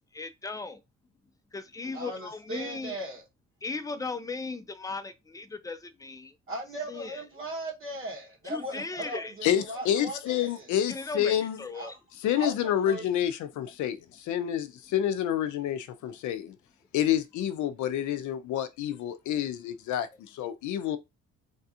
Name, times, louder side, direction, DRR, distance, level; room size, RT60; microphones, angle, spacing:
voice 1, 0.1-0.8 1.5-3.0 3.6-6.3 6.9-7.1 8.5-9.3 10.9-11.9, left 3 dB, 10° left, 0.4 m, -37 dB
voice 2, 1.9-3.3 6.5-10.7 11.7-12.0 12.3-13.1, right 1 dB, 45° right, 1.4 m, -38 dB
voice 3, 9.4-11.7 12.2-16.6 16.9-21.0, left 10 dB, 75° left, 0.5 m, -28 dB
3.3 x 2.4 x 2.7 m
cardioid pair, 90°, 30 cm